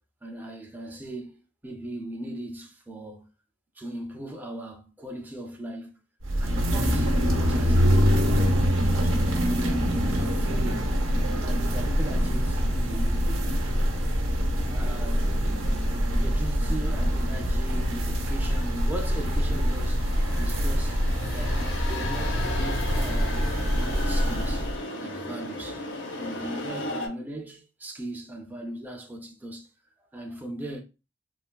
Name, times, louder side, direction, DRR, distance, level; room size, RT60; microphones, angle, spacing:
voice 1, 0.2-3.3 3.8-6.0 6.4-8.5 8.8-9.9 10.2-10.9 11.4-13.5 14.7-15.4 16.1-20.1 20.4-21.0 21.3-24.7 25.0-25.9 26.2-29.7 30.0-30.8, right 1 dB, 10° right, 0.4 m, -38 dB
sound 1, 6.2-24.8, equal, 90° right, 0.8 m, -25 dB
sound 2, 15.4-27.1, left 2 dB, 65° left, 0.6 m, -37 dB
3.3 x 2.2 x 2.2 m
head